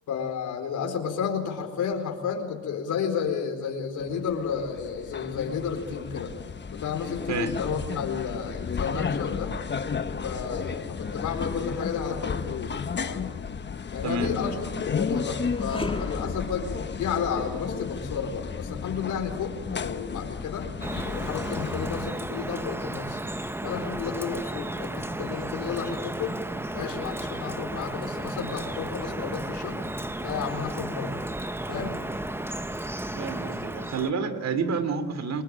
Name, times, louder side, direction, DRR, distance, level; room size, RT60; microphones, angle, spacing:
voice 1, 0.1-6.3 6.7-9.5 10.2-13.3 13.9-20.7 21.1-23.2 23.6-26.4 26.7-29.8 30.2-31.1 31.7-32.0, left 6 dB, 75° left, 4 dB, 4.5 m, -32 dB
sound 1, 4.0-22.1, left 5 dB, 35° left, 1.4 m, -33 dB
sound 2, 15.5-24.7 25.2-25.3 26.2-27.1, left 3 dB, 20° left, 2.3 m, -42 dB
Drip, 20.8-34.1, right 1 dB, 10° right, 1.2 m, -33 dB
voice 2, 33.1-35.4, right 4 dB, 60° right, 12 dB, 3.1 m, -29 dB
29.5 x 22.0 x 9.0 m, 1.3 s
cardioid pair, 90°, 30 cm